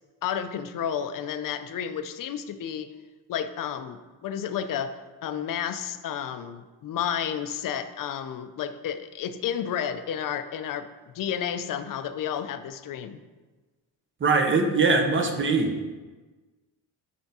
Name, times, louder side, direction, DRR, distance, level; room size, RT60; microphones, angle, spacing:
voice 1, 0.2-2.9 3.3-5.0 5.2-13.2, left 8 dB, 50° left, 10 dB, 0.5 m, -31 dB
voice 2, 14.2-15.9, right 4 dB, 30° right, 4 dB, 0.7 m, -22 dB
9.3 x 3.4 x 4.2 m, 1.3 s
wide cardioid pair, 160°, 43 cm